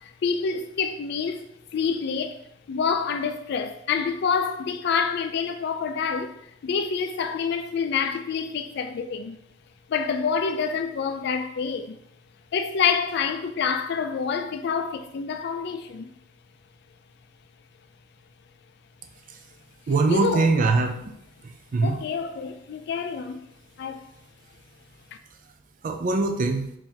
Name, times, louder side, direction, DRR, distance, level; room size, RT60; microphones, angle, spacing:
voice 1, 0.0-1.4 1.7-2.4 2.7-6.4 6.6-9.4 9.9-12.0 12.5-16.1 20.1-20.5 21.8-23.4 23.8-24.1, left 6 dB, 60° left, 0.3 m, -27 dB
voice 2, 19.9-21.1 21.7-22.0 25.8-26.7, right 3 dB, 45° right, 0.4 m, -22 dB
3.9 x 3.1 x 2.8 m
head